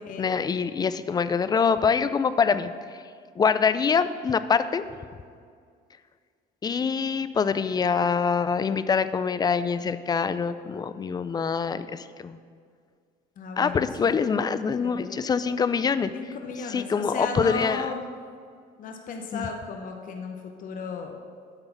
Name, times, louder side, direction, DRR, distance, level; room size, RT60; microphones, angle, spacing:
voice 1, 0.2-2.7 3.4-4.9 6.6-12.4 13.6-16.1 16.7-17.9 19.3-19.5, left 6 dB, 25° left, 13 dB, 0.3 m, -25 dB
voice 2, 13.4-14.1 14.8-15.2 16.1-18.0 18.8-21.2, left 4 dB, 55° left, 3 dB, 0.8 m, -35 dB
9.0 x 4.0 x 7.0 m, 2.1 s
cardioid pair, 110°, 17 cm